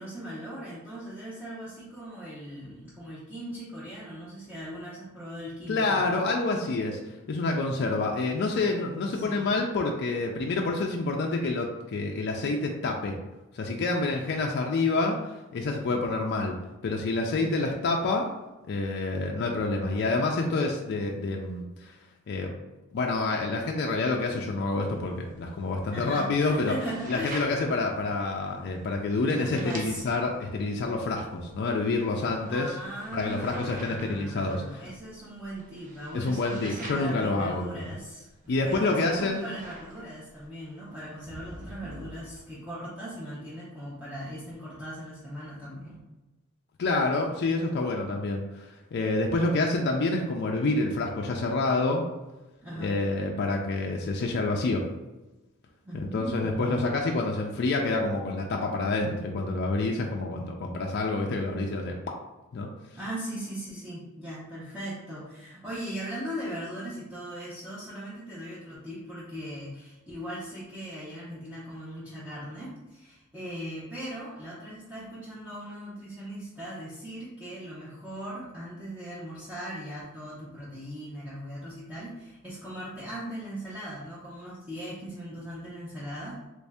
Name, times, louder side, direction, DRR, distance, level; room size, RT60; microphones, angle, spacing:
voice 1, 0.0-6.0 9.0-9.5 17.4-17.7 25.9-27.4 29.3-30.0 32.5-38.3 38.6-46.0 52.6-53.0 55.8-56.9 62.9-86.5, equal, 5° right, -10 dB, 0.7 m, -39 dB
voice 2, 5.7-7.0 7.3-13.1 13.5-15.2 15.5-16.5 16.8-18.3 18.7-22.0 22.3-22.5 22.9-26.7 27.1-32.7 33.1-34.8 36.1-37.9 38.5-39.5 46.8-52.0 52.8-54.8 55.9-62.0 62.5-62.7, left 3 dB, 50° left, 1 dB, 0.4 m, -28 dB
sound 1, 24.9-42.4, right 1 dB, 40° right, 0.6 m, -48 dB
3.1 x 2.6 x 3.4 m, 1.1 s
head